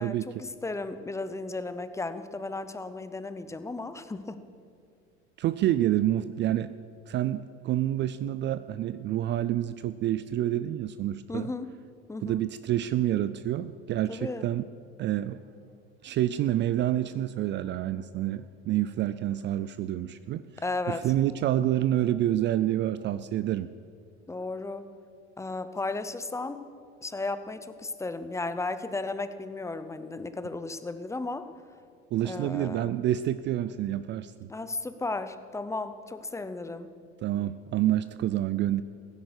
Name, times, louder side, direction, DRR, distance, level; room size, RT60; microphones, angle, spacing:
voice 1, 0.0-4.4 11.3-11.7 12.1-12.4 14.1-14.5 20.6-21.1 24.3-24.9 25.4-26.6 27.0-31.5 32.2-33.0 34.5-36.9, left 3 dB, 10° left, 11 dB, 0.7 m, -34 dB
voice 2, 5.4-6.7 7.1-11.5 12.2-14.6 15.0-15.4 16.0-20.4 20.9-23.7 32.1-34.5 37.2-38.8, right 12 dB, 35° right, 14 dB, 0.4 m, -28 dB
15.0 x 10.5 x 6.6 m, 2.3 s
supercardioid pair, 110°, 33 cm